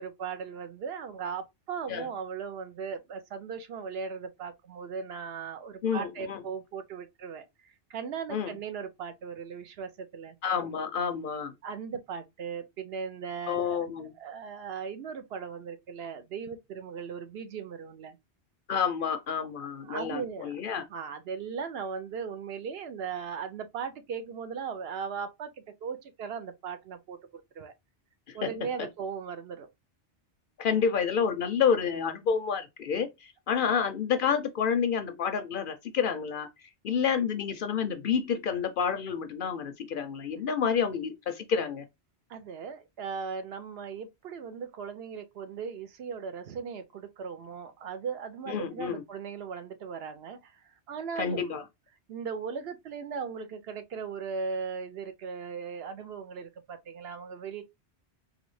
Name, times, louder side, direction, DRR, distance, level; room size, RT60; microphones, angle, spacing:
voice 1, 0.0-10.4 11.6-18.2 19.6-20.5 20.9-25.5 25.8-27.7 28.3-29.7 42.3-51.5 52.1-57.6, right 6 dB, 70° right, 0.8 m, -38 dB
voice 2, 5.8-6.4 8.3-8.5 10.4-11.5 13.5-14.1 18.7-20.8 28.3-28.5 30.6-36.5 36.8-41.8 48.5-49.0 51.2-51.6, left 7 dB, 60° left, 0.6 m, -29 dB
4.0 x 2.3 x 3.0 m
omnidirectional pair, 1.1 m